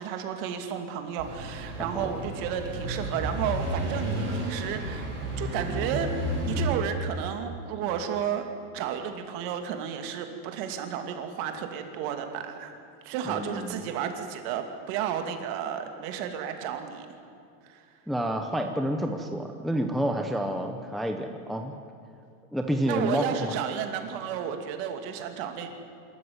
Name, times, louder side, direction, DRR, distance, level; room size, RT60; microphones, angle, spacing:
voice 1, 0.0-5.1 5.4-6.1 6.4-8.5 8.7-12.7 13.0-17.1 17.6-17.8 22.9-25.7, right 8 dB, 50° right, 6 dB, 2.6 m, -32 dB
sound 1, 1.2-6.7, equal, 25° right, 7.9 m, -32 dB
voice 2, 13.3-13.8 18.1-21.7 22.5-23.6, equal, ahead, 4 dB, 0.8 m, -29 dB
26.0 x 14.0 x 9.5 m, 2.6 s
supercardioid pair, 160°, 42 cm